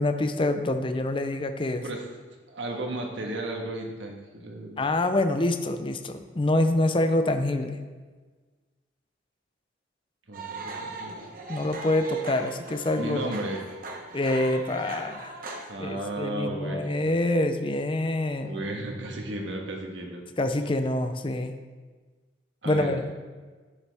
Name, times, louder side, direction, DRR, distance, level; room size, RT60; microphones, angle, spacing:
voice 1, 0.0-1.8 4.8-7.8 11.5-13.3 14.1-15.3 15.8-18.7 20.4-21.5 22.6-23.1, left 1 dB, 25° left, 8 dB, 0.5 m, -26 dB
voice 2, 2.5-4.9 10.3-11.1 13.0-13.6 15.7-16.9 18.4-20.2 22.6-23.0, right 1 dB, 80° right, 1 dB, 1.5 m, -34 dB
sound 1, 10.3-15.7, right 3 dB, 50° right, 1.1 m, -39 dB
10.5 x 7.1 x 3.5 m, 1.4 s
head